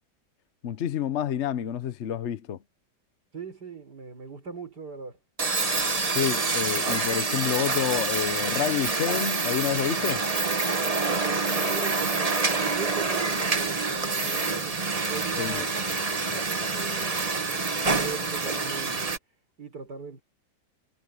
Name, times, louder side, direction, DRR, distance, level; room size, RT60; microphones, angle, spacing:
voice 1, 0.6-2.6 6.1-10.2 15.4-15.7, left 9 dB, 55° left, 0.8 m, -28 dB
voice 2, 3.3-5.2 11.2-17.6 17.9-19.1 19.6-20.2, right 5 dB, 55° right, 5.5 m, -40 dB
sound 1, 5.4-19.2, right 3 dB, 25° right, 1.0 m, -27 dB
omnidirectional pair, 2.1 m